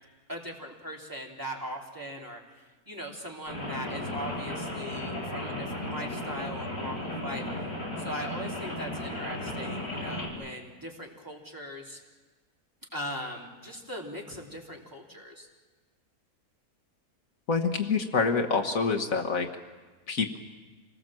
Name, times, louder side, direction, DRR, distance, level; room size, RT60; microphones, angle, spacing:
voice 1, 0.3-7.4 8.0-12.0 12.9-15.5, equal, 15° right, -2 dB, 3.2 m, -39 dB
Rain, 3.5-10.3, left 1 dB, 80° left, 5.9 m, -35 dB
voice 2, 17.5-19.5 20.1-20.4, left 4 dB, 65° left, 3 dB, 1.6 m, -26 dB
26.5 x 19.5 x 7.6 m, 1.3 s
omnidirectional pair, 1.6 m